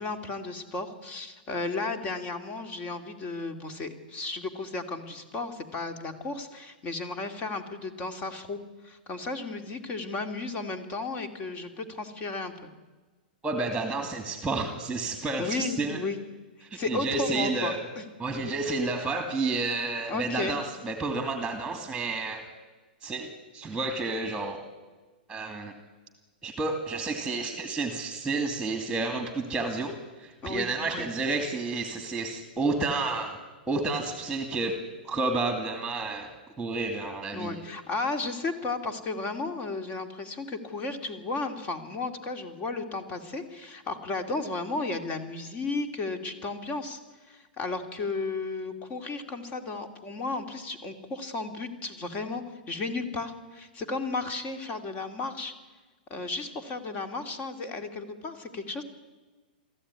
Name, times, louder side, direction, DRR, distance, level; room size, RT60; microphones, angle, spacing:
voice 1, 0.0-12.7 15.4-16.2 16.6-18.0 18.7-18.8 20.1-20.6 30.4-31.1 37.3-47.0 47.3-55.5 56.1-58.8, left 3 dB, 30° left, 8 dB, 2.6 m, -34 dB
voice 2, 13.4-16.0 16.7-17.8 18.2-22.4 23.0-24.6 25.3-25.7 26.4-29.9 30.2-33.4 33.7-34.8 35.0-36.3 36.6-37.7, right 3 dB, 5° right, 5 dB, 2.4 m, -30 dB
22.5 x 14.5 x 9.8 m, 1.3 s
hypercardioid pair, 140°, 5 cm